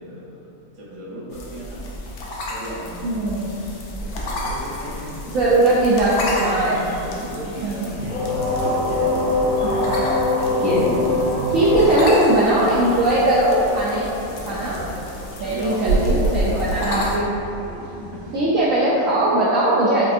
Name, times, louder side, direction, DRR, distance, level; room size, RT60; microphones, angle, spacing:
voice 1, 0.0-1.9 2.5-3.4 4.3-5.6 7.0-9.8 11.4-12.9 14.3-14.8 15.4-17.3 17.7-18.2, right 1 dB, 35° right, -8 dB, 0.5 m, -36 dB
sound 1, 1.3-17.2, left 1 dB, 90° left, 0.6 m, -32 dB
voice 2, 3.0-3.5 5.3-6.9 7.6-7.7 9.6-11.0 11.5-14.1 14.5-14.9 15.4-17.3 18.3-20.1, right 1 dB, 70° right, -7 dB, 0.8 m, -19 dB
sound 2, 4.0-18.4, right 2 dB, 90° right, 2.1 m, -31 dB
sound 3, 8.1-13.8, left 3 dB, 65° left, 1.5 m, -23 dB
4.8 x 2.5 x 2.5 m, 2.8 s
omnidirectional pair, 1.8 m